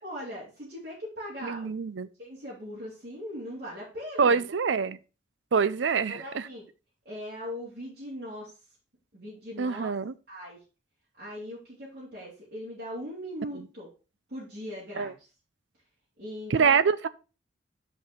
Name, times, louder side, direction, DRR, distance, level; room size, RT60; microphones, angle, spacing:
voice 1, 0.0-1.7 2.2-4.4 6.1-6.6 7.0-8.5 9.1-9.9 10.3-10.6 11.2-13.9 14.3-15.3 16.2-16.8, equal, 55° right, 3.0 m, -39 dB
voice 2, 1.4-2.1 4.2-5.0 5.5-6.5 9.6-10.1 13.5-13.6 15.0-15.1 16.5-17.1, right 5 dB, 90° right, 0.5 m, -25 dB
6.5 x 5.3 x 4.5 m
head